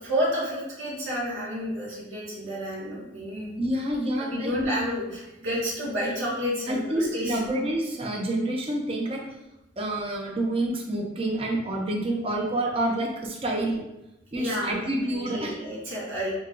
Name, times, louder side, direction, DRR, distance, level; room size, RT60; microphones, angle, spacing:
voice 1, 0.0-3.5 4.2-7.4 14.3-16.3, equal, 90° right, -7 dB, 1.3 m, -30 dB
voice 2, 3.6-4.5 6.7-9.2 9.8-13.8 14.3-15.5, right 1 dB, 30° right, -1 dB, 0.7 m, -28 dB
5.1 x 2.8 x 2.5 m, 0.93 s
head